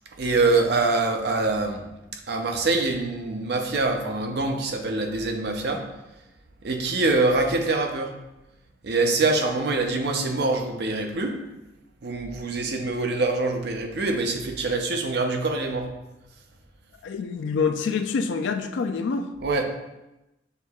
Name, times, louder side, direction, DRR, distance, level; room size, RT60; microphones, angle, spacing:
voice 1, 0.2-1.9 2.3-5.9 6.6-8.2 8.8-11.4 12.0-15.9 19.4-19.6, right 3 dB, 60° right, 3 dB, 0.5 m, -24 dB
voice 2, 17.0-19.3, left 5 dB, 75° left, 8 dB, 0.3 m, -26 dB
6.6 x 2.7 x 2.3 m, 0.95 s
head